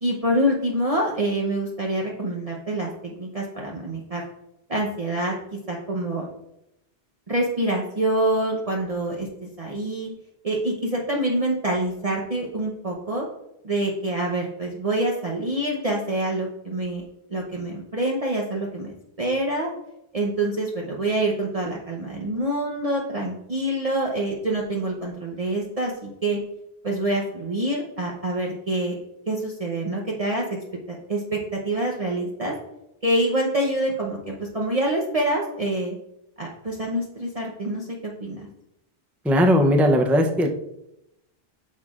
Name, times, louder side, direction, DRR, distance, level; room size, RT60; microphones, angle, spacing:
voice 1, 0.0-4.2 4.7-6.3 7.3-10.1 10.4-13.2 13.6-17.0 17.3-19.7 20.1-26.4 26.8-29.0 29.3-30.6 30.9-32.5 33.0-36.0 36.4-38.5, right 1 dB, 40° right, -2 dB, 0.9 m, -26 dB
voice 2, 39.2-40.5, equal, ahead, 3 dB, 0.5 m, -18 dB
9.2 x 6.4 x 2.4 m, 0.84 s
omnidirectional pair, 1.0 m